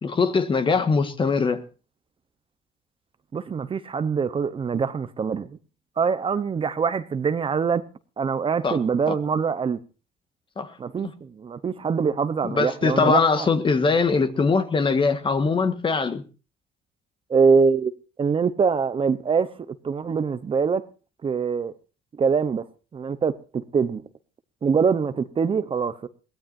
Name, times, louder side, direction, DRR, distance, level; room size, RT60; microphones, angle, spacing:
voice 1, 0.0-1.6 8.6-8.8 9.1-9.2 10.6-10.7 12.4-16.2, left 4 dB, 30° left, 1.6 m, -22 dB
voice 2, 3.3-5.5 6.0-7.8 8.2-9.8 10.8-13.5 17.3-17.9 18.2-19.5 19.8-20.8 21.2-21.7 22.2-22.6 22.9-24.0 24.6-26.1, right 5 dB, 30° right, 0.8 m, -23 dB
22.0 x 17.0 x 2.6 m
cardioid pair, 110°, 17 cm